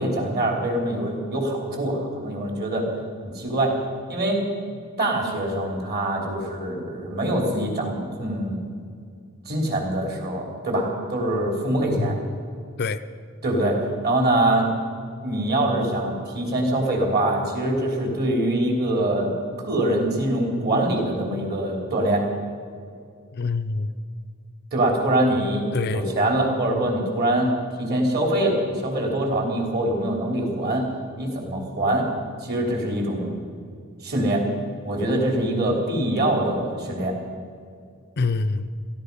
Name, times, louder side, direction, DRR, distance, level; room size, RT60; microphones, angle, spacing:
voice 1, 0.0-2.9 3.2-3.7 4.1-4.4 5.0-8.7 9.5-12.2 13.4-13.8 14.0-14.7 15.2-19.3 19.6-22.2 24.7-25.7 25.9-27.5 27.8-30.9 31.2-32.1 32.4-33.4 34.0-34.4 34.8-37.1, right 1 dB, 50° right, 3.6 m, -24 dB
voice 2, 12.0-12.4 12.8-13.0 23.3-23.9 25.7-26.1 38.2-38.7, left 3 dB, 50° left, 0.5 m, -26 dB
17.0 x 14.0 x 5.5 m
head